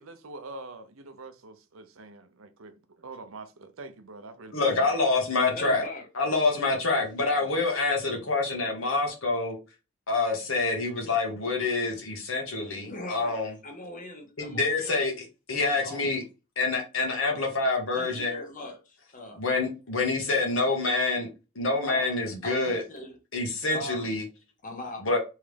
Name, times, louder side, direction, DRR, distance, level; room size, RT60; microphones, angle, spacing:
voice 1, 0.0-4.5 4.8-5.0, right 3 dB, 75° right, 0.7 m, -45 dB
voice 2, 4.5-5.8 6.1-9.6 10.1-13.5 14.4-16.2 16.6-18.4 19.4-21.3 21.5-22.8 23.3-24.2 25.0-25.2, left 3 dB, 70° left, 1.5 m, -27 dB
voice 3, 5.5-6.1 7.1-7.5 12.9-14.9 15.6-16.1 17.9-19.4 21.8-23.2 23.7-24.1 24.6-25.1, left 1 dB, 40° left, 1.2 m, -40 dB
3.5 x 3.2 x 3.3 m
head